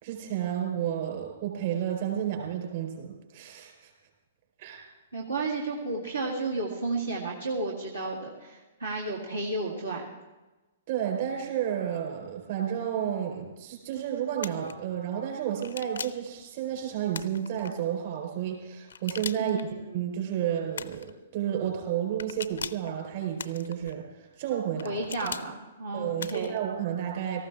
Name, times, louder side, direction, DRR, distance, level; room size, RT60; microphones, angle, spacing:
voice 1, 0.0-3.9 4.6-4.9 10.9-25.0 25.9-27.4, right 10 dB, 45° right, 2 dB, 4.5 m, -31 dB
voice 2, 5.1-10.1 19.4-19.8 24.8-26.6, right 2 dB, 80° right, -4 dB, 2.1 m, -32 dB
sound 1, 14.4-14.7 15.6-16.3 17.1-17.7 18.9-19.6 20.7-21.1 22.2-22.9 23.4-23.9 24.8-25.5 26.2-26.6, left 6 dB, 65° left, 0.6 m, -39 dB
18.0 x 14.5 x 3.7 m, 1.1 s
figure-of-eight pair, 115°, 0 cm